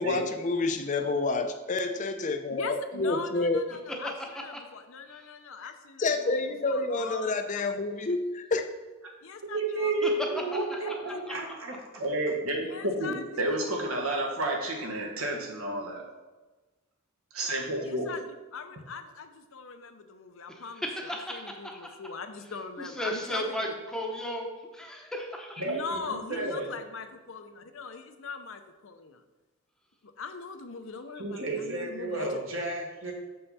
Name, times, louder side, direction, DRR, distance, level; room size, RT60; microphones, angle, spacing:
voice 1, 0.0-3.6 5.6-5.7 6.0-8.6, left 3 dB, 35° left, 7 dB, 0.5 m, -28 dB
voice 2, 2.5-7.4 9.2-10.0 10.8-11.4 12.6-13.6 17.8-23.6 25.7-29.2 30.0-32.4, left 4 dB, 70° left, 7 dB, 0.7 m, -41 dB
voice 3, 9.4-12.0 25.6-26.7 31.2-33.1, right 2 dB, 65° right, 0 dB, 1.6 m, -32 dB
voice 4, 12.0-16.0 17.3-18.1, right 1 dB, 85° right, 0 dB, 1.5 m, -30 dB
voice 5, 20.5-21.8 22.8-25.6, equal, 5° left, 0 dB, 0.8 m, -35 dB
6.8 x 5.6 x 4.1 m, 1.2 s
head